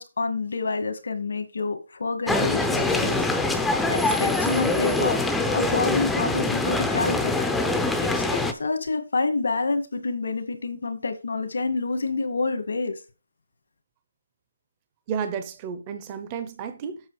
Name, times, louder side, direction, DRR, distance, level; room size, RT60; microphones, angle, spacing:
voice 1, 0.0-3.2 3.9-5.2 5.5-7.5 8.0-12.9, left 3 dB, 80° left, 1.8 m, -28 dB
sound 1, 2.3-8.5, left 2 dB, 5° left, 0.6 m, -24 dB
voice 2, 15.1-17.1, right 7 dB, 25° right, 0.8 m, -32 dB
8.1 x 5.8 x 4.8 m
hypercardioid pair, 165°, 0 cm